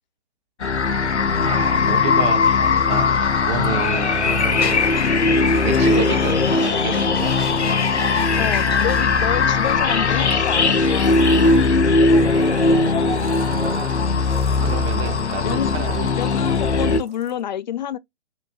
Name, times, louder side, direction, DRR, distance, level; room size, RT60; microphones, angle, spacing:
sound 1, 0.6-17.0, left 4 dB, 85° left, 0.7 m, -19 dB
Sliding door, 1.3-2.7 3.6-9.2 10.3-17.4, right 5 dB, 60° right, 1.5 m, -38 dB
voice 1, 1.4-5.3 5.6-7.4 14.6-16.1, right 7 dB, 25° right, 0.9 m, -29 dB
sound 2, 4.5-9.8, left 6 dB, 60° left, 1.3 m, -35 dB
voice 2, 8.3-13.2 15.4-15.7 16.2-18.0, left 10 dB, 45° left, 0.5 m, -29 dB
5.7 x 2.1 x 2.6 m
figure-of-eight pair, 130°, 33 cm